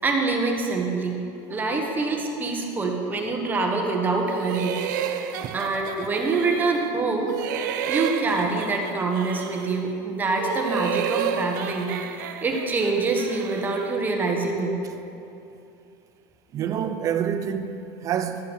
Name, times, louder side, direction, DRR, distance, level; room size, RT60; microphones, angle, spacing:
voice 1, 0.0-1.2 1.5-4.8 5.1-5.2 5.5-7.6 7.9-11.9 12.4-14.8, right 3 dB, 20° right, 1.3 m, -25 dB
sound 1, 4.3-6.9 7.2-9.8 10.2-14.0, right 9 dB, 90° right, 0.7 m, -31 dB
voice 2, 16.5-18.5, right 8 dB, 35° right, 0.6 m, -28 dB
12.0 x 7.3 x 6.3 m
supercardioid pair, 140°, 10 cm